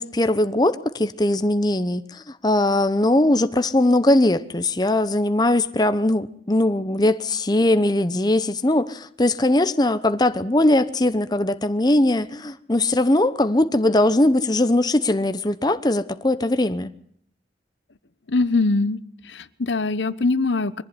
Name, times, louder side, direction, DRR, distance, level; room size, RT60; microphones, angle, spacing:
voice 1, 0.0-16.9, left 1 dB, 20° left, 0.9 m, -20 dB
voice 2, 18.3-19.0 19.3-20.8, left 3 dB, 75° left, 1.0 m, -22 dB
23.0 x 15.5 x 9.7 m
head